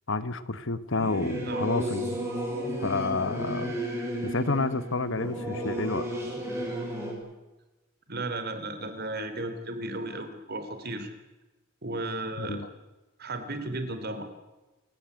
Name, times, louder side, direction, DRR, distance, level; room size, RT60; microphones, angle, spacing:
voice 1, 0.1-2.2 2.8-3.8 4.2-6.0 12.4-12.7, left 3 dB, 60° left, 14 dB, 1.2 m, -29 dB
Singing / Musical instrument, 0.9-7.1, right 1 dB, 10° right, 6.7 m, -33 dB
voice 2, 8.1-11.1 11.8-12.6 13.2-14.3, right 2 dB, 45° right, 8 dB, 3.4 m, -34 dB
27.5 x 15.5 x 9.7 m, 1.1 s
head